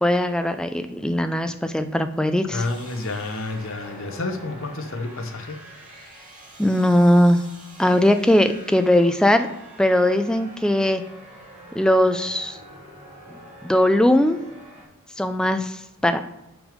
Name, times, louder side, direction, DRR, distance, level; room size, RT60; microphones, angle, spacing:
voice 1, 0.0-2.6 6.6-7.4 7.8-9.5 9.8-11.0 11.8-12.6 13.6-14.4 15.2-16.2, left 1 dB, 5° left, 8 dB, 0.3 m, -19 dB
voice 2, 2.5-5.6, left 2 dB, 60° left, 6 dB, 0.8 m, -29 dB
sound 1, 2.5-14.8, equal, 40° right, 2.1 m, -45 dB
6.1 x 5.2 x 5.1 m, 0.92 s
head